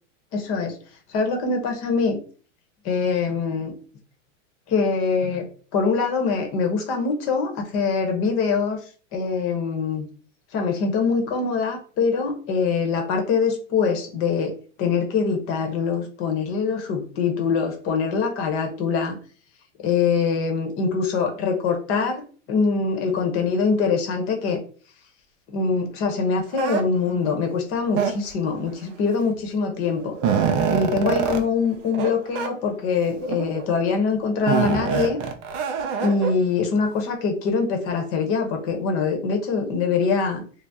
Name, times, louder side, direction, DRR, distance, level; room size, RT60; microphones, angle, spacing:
voice 1, 0.3-0.8 1.1-2.2 2.8-3.7 4.7-5.5 5.7-8.8 9.1-10.1 10.5-14.5 14.8-19.2 19.8-22.2 22.5-24.6 25.5-30.1 30.7-35.2 36.0-40.4, left 5 dB, 35° left, 4 dB, 0.8 m, -23 dB
sound 1, 26.5-26.8 27.9-28.5 29.4-29.5 29.9-31.4 31.9-32.1 32.3-32.5 33.2-33.6 34.5-36.3, right 6 dB, 45° right, 0.5 m, -24 dB
2.7 x 2.0 x 3.4 m, 0.41 s
supercardioid pair, 135°, 37 cm